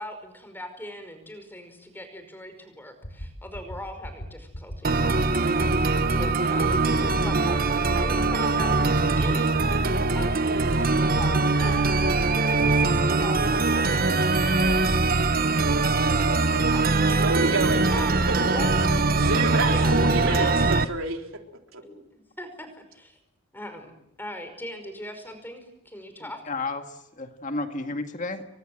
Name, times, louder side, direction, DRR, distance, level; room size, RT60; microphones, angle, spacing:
voice 1, 0.0-14.8 15.4-15.6 15.9-17.3 17.9-19.1 19.7-20.8 21.8-23.2 23.5-23.9 24.2-26.4, left 1 dB, 10° left, 8 dB, 5.3 m, -40 dB
sound 1, 3.0-3.3 3.5-3.8 4.0-4.3 4.5-4.8 5.0-5.3 5.5-5.8 6.0-6.3 6.5-6.7 7.0-7.3 7.5-7.7 8.0-8.3 8.5-8.8 9.0-9.3 9.5-9.8 10.0-10.3 10.5-10.8 11.0-11.3 11.5-11.8 12.0-12.3 12.5-12.8 13.0-13.3, equal, 70° left, 6.5 m, -37 dB
sound 2, 4.8-20.8, right 3 dB, 45° right, 1.2 m, -22 dB
voice 2, 17.2-18.0 18.3-18.5 19.1-20.5 20.9-21.2 21.7-21.8, right 2 dB, 70° right, 4 dB, 3.8 m, -28 dB
voice 3, 26.5-28.4, left 3 dB, 35° left, 6 dB, 1.9 m, -32 dB
29.5 x 24.0 x 7.8 m, 0.80 s
head